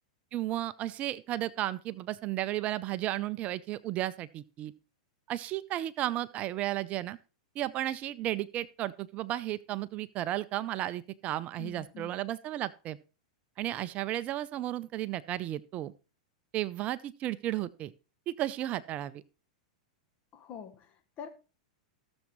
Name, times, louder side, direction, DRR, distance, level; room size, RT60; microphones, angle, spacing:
voice 1, 0.3-4.7 5.3-7.2 7.6-13.0 13.6-15.9 16.5-17.9 18.3-19.2, right 14 dB, 35° right, 0.5 m, -34 dB
voice 2, 11.6-12.2 20.3-21.3, left 7 dB, 35° left, 1.4 m, -45 dB
17.0 x 7.1 x 3.1 m
hypercardioid pair, 115°, 4 cm